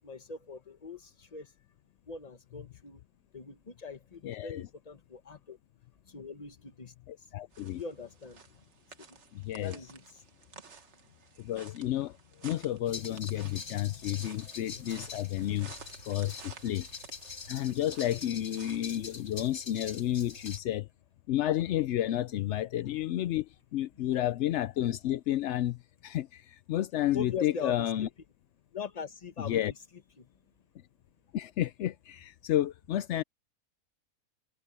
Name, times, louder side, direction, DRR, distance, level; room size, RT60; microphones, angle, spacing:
voice 1, 0.0-1.5 2.1-3.0 3.3-5.6 6.0-6.9 7.2-7.3 7.7-8.4 9.1-9.2 9.6-10.2 27.1-28.1 28.7-29.6 30.2-30.3, left 5 dB, 25° left, 1.2 m, -41 dB
voice 2, 4.2-4.7 7.1-7.8 9.3-9.8 11.4-12.2 12.4-15.7 16.1-16.9 17.5-20.9 21.3-28.1 29.4-29.7 31.3-33.2, left 13 dB, 75° left, 0.6 m, -31 dB
sound 1, 7.5-18.8, right 5 dB, 45° right, 1.6 m, -53 dB
sound 2, 12.9-20.6, left 4 dB, 50° left, 3.4 m, -45 dB
omnidirectional pair, 1.7 m